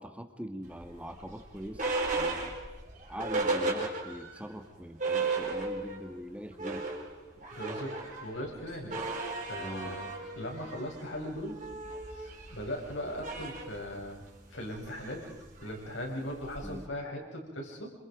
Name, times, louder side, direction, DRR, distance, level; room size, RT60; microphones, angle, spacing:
voice 1, 0.0-1.9 2.1-2.5 3.1-7.0 9.6-10.0 16.6-16.9, equal, 5° right, 6 dB, 1.7 m, -42 dB
sound 1, 0.8-4.4 4.7-4.8 5.0-6.1 6.4-16.9, right 3 dB, 40° right, 4.9 m, -36 dB
voice 2, 7.5-9.1 9.5-11.6 12.1-14.2 14.5-15.3 15.6-17.9, equal, 75° left, 0 dB, 6.8 m, -39 dB
28.0 x 26.5 x 5.2 m, 0.94 s
head